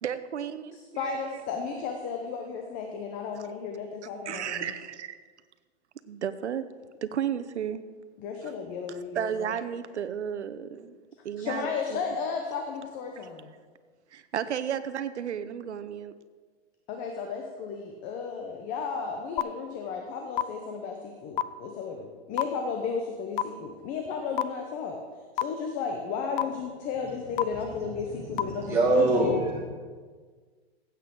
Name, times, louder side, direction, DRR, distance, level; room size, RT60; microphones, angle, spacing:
voice 1, 0.0-1.4 4.3-5.1 6.1-6.7 7.0-7.8 8.4-8.5 9.1-11.0 11.2-12.0 14.1-16.1, right 9 dB, 90° right, 13 dB, 0.9 m, -33 dB
voice 2, 1.0-4.7 8.2-9.5 11.4-13.5 16.9-25.0 25.4-29.2, left 5 dB, 25° left, 3 dB, 0.8 m, -34 dB
sound 1, 19.4-19.5 20.4-20.5 21.4-21.5 22.4-22.5 23.4-23.5 24.4-24.5 25.4-25.5 26.4-26.5 27.4-27.5 28.4-28.5, left 12 dB, 50° left, 0.5 m, -24 dB
voice 3, 28.1-29.6, right 2 dB, 10° right, -8 dB, 3.1 m, -24 dB
16.0 x 8.3 x 3.8 m, 1.5 s
hypercardioid pair, 150°, 33 cm